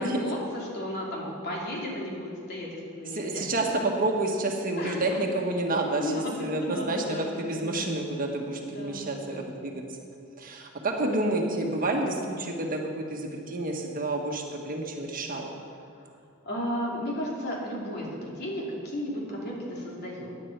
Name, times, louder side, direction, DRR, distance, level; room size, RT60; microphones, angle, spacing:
voice 1, 0.0-3.5 4.8-5.2 6.0-7.4 7.6-7.8 8.7-9.6 11.0-11.4 16.4-20.3, equal, 50° left, -3 dB, 2.8 m, -34 dB
voice 2, 3.1-6.1 6.4-7.0 7.4-9.8 10.4-15.5, right 2 dB, 40° right, 1 dB, 1.4 m, -29 dB
16.5 x 9.9 x 4.6 m, 2.6 s
head